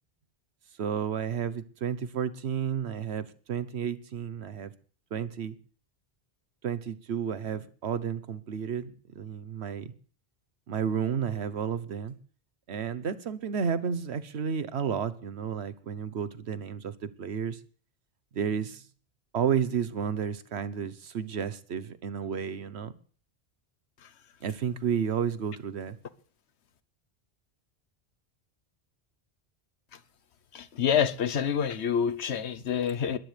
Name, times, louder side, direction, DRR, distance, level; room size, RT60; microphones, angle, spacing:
voice 1, 0.8-4.7 5.1-5.5 6.6-9.9 10.7-12.1 12.7-17.6 18.3-18.8 19.3-22.9 24.4-26.0, right 7 dB, 80° right, 1.2 m, -32 dB
voice 2, 30.5-33.2, left 8 dB, 90° left, 1.2 m, -27 dB
21.0 x 14.5 x 3.4 m
omnidirectional pair, 1.1 m